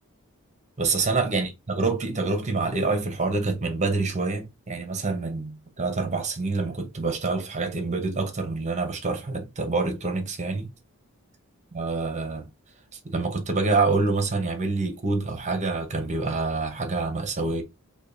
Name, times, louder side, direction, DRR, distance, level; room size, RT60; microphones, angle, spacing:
voice 1, 0.8-10.7 11.7-12.5 13.0-17.6, right 3 dB, 35° right, 0.8 m, -26 dB
5.1 x 2.2 x 2.6 m
head